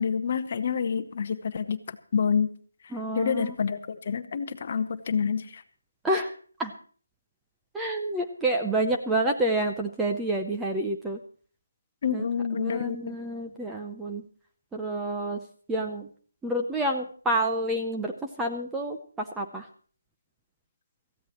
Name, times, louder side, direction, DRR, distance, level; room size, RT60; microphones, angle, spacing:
voice 1, 0.0-2.5 2.8-5.6 12.0-13.1, left 6 dB, 35° left, 10 dB, 0.9 m, -28 dB
voice 2, 2.9-3.5 6.0-6.3 6.6-6.7 7.7-11.2 12.1-12.3 12.6-14.2 14.7-15.4 15.7-16.1 16.4-19.7, right 1 dB, 5° right, 1 dB, 0.6 m, -28 dB
19.5 x 14.5 x 3.0 m, 0.43 s
figure-of-eight pair, 170°, 0 cm